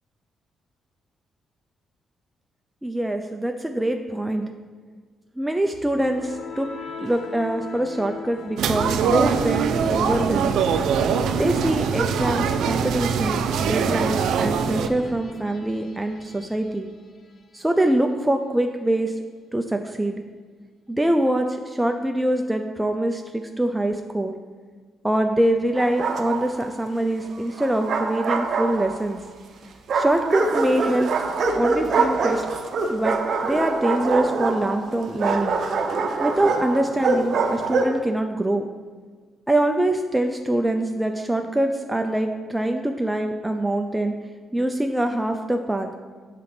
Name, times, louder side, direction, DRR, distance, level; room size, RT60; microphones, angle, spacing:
voice 1, 2.8-4.5 5.4-6.7 7.0-10.6 11.4-16.9 17.5-19.1 19.5-20.2 20.9-24.3 25.0-29.2 29.9-31.1 31.5-32.4 32.9-35.6 36.2-38.6 39.5-44.1 44.5-45.9, right 1 dB, 5° right, 4 dB, 0.4 m, -24 dB
sound 1, 5.7-17.6, left 5 dB, 45° left, 0.7 m, -41 dB
sound 2, 8.6-14.9, right 6 dB, 85° right, 0.4 m, -22 dB
Bark, 25.8-26.7 27.6-29.2 29.9-38.0, right 4 dB, 55° right, 0.7 m, -24 dB
7.5 x 3.8 x 5.9 m, 1.5 s
cardioid pair, 120°, 0 cm